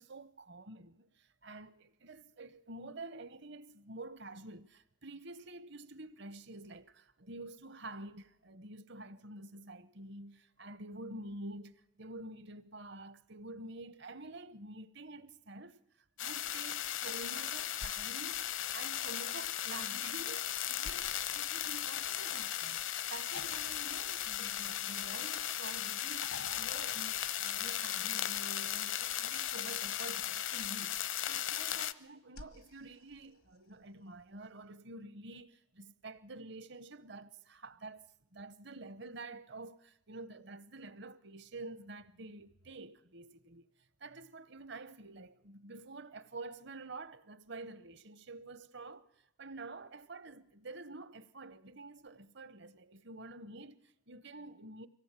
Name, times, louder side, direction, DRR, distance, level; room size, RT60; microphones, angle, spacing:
voice 1, 0.0-15.8 16.2-38.1 38.3-43.7 44.0-49.1 49.4-54.9, right 2 dB, 55° right, 0.9 m, -49 dB
sound 1, 16.2-31.9, left 11 dB, 65° left, 0.7 m, -37 dB
sound 2, 17.7-19.3 20.8-22.5 23.3-25.6 26.2-28.0 30.0-30.8 32.3-33.8 35.4-35.5, left 4 dB, 90° left, 1.4 m, -53 dB
24.0 x 17.0 x 8.3 m
head